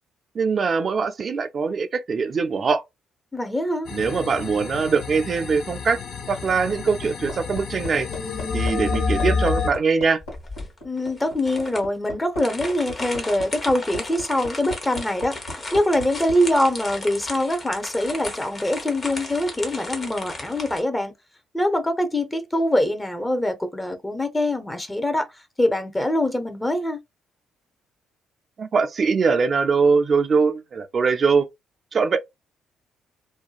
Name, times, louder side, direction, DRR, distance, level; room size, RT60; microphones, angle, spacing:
voice 1, 0.4-2.8 3.9-6.0 6.3-8.1 8.5-10.2 28.6-31.4 31.9-32.2, right 5 dB, 45° right, 0.4 m, -22 dB
voice 2, 3.3-3.9 10.8-21.1 21.5-25.3 25.6-27.0, left 1 dB, 15° left, 0.7 m, -24 dB
sound 1, 3.9-9.7, left 5 dB, 55° left, 0.5 m, -28 dB
Hammer, 6.5-16.4 17.7-17.8, left 2 dB, 80° left, 1.6 m, -37 dB
sound 2, 10.2-20.8, left 2 dB, 35° left, 1.0 m, -35 dB
2.6 x 2.2 x 2.3 m
hypercardioid pair, 45°, 0 cm